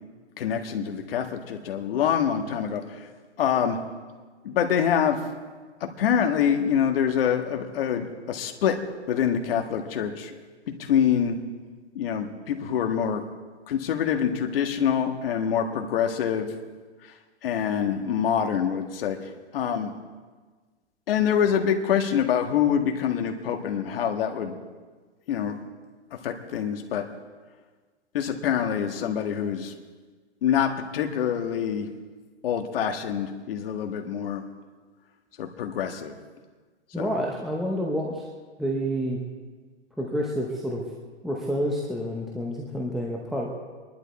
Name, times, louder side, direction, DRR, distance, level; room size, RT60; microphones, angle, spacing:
voice 1, 0.4-3.1 3.4-3.8 4.4-5.2 6.0-8.8 9.1-10.3 10.7-11.4 11.9-13.2 13.7-16.5 17.4-19.9 21.1-24.6 25.3-25.6 26.2-27.0 28.1-29.7 30.4-31.9 32.4-34.4 35.4-36.1 37.0-37.2, left 8 dB, 55° left, 5 dB, 1.7 m, -25 dB
voice 2, 36.9-38.3 38.6-39.2 40.0-40.8 41.2-43.5, equal, ahead, -3 dB, 0.8 m, -28 dB
24.5 x 11.5 x 4.2 m, 1.4 s
hypercardioid pair, 150°, 34 cm